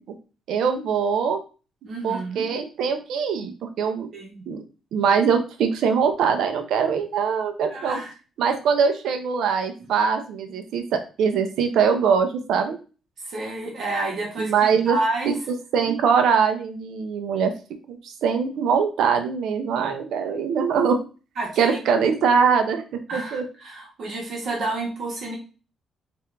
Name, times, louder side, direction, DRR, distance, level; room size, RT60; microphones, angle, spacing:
voice 1, 0.5-1.4 2.0-4.1 4.5-4.6 4.9-8.0 8.4-12.8 14.4-15.0 15.3-15.4 15.7-17.5 17.9-21.0 21.6-23.4, right 6 dB, 80° right, 6 dB, 0.6 m, -22 dB
voice 2, 1.8-2.5 4.1-4.4 7.7-8.1 13.2-14.5 14.8-15.4 21.4-21.8 23.1-25.4, right 2 dB, 60° right, -2 dB, 1.5 m, -29 dB
4.3 x 2.5 x 3.3 m, 0.34 s
cardioid pair, 90°, 0 cm